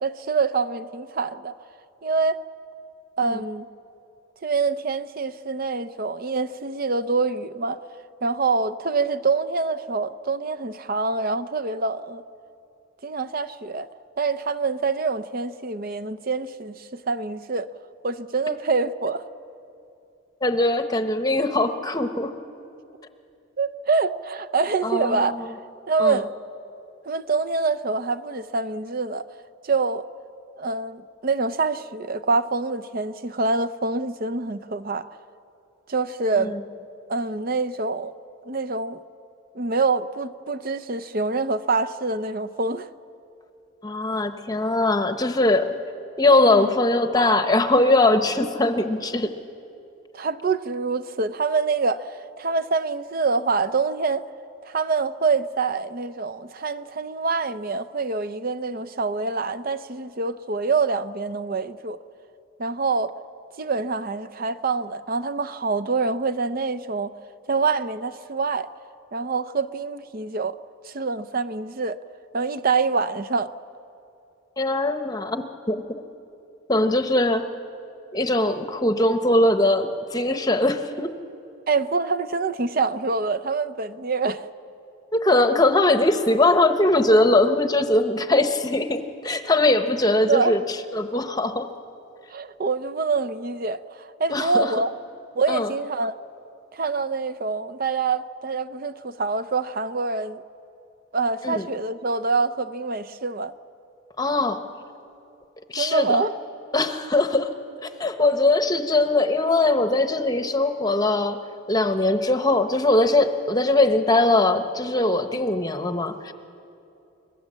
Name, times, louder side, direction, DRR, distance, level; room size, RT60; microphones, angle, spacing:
voice 1, 0.0-1.5 2.0-2.4 3.2-3.7 4.4-7.8 8.2-12.2 13.0-13.9 14.2-17.7 18.0-19.3 23.6-25.3 25.9-26.3 27.1-29.3 29.6-30.0 30.6-35.1 35.9-36.6 37.1-38.1 38.4-39.0 39.5-42.9 46.5-46.7 50.1-54.3 54.6-62.0 62.6-63.1 63.6-67.1 67.5-68.7 69.1-70.6 70.8-72.0 72.3-73.5 81.7-84.5 90.3-90.6 92.3-94.9 95.4-96.2 96.7-100.4 101.1-103.5 105.8-106.3, right 4 dB, 45° right, 0.6 m, -25 dB
voice 2, 20.4-22.3 24.8-25.4 26.0-26.2 36.4-36.6 43.8-45.7 46.2-49.3 74.6-75.8 76.7-77.4 78.1-81.1 85.1-90.6 90.9-91.7 94.3-94.7 95.5-95.7 101.4-101.7 104.2-104.6 105.7-106.2 106.7-107.5 107.8-111.4 111.7-116.3, left 2 dB, 20° left, 0.9 m, -21 dB
26.5 x 20.5 x 7.5 m
head